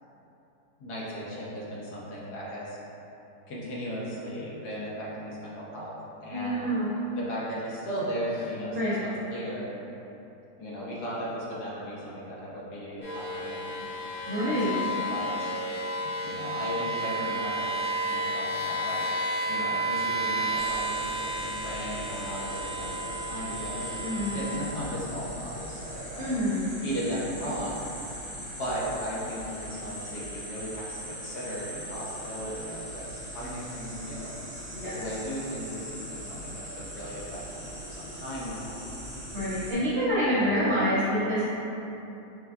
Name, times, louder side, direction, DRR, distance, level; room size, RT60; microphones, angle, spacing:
voice 1, 0.8-2.8 3.5-6.7 7.2-9.7 10.6-13.8 14.4-15.6 16.2-17.7 18.1-19.1 19.5-26.3 26.8-27.8 28.4-34.4 34.8-38.8 40.2-40.6, equal, 75° left, -7 dB, 1.4 m, -36 dB
voice 2, 6.3-6.9 8.7-9.0 14.3-14.7 24.0-24.3 26.2-26.7 34.7-35.0 39.3-41.5, equal, 55° right, -10 dB, 0.9 m, -27 dB
sound 1, 13.0-24.6, right 1 dB, 40° left, 1.0 m, -32 dB
sound 2, 20.6-39.7, equal, 5° right, 1.0 m, -40 dB
6.6 x 2.3 x 2.3 m, 3.0 s
omnidirectional pair, 1.7 m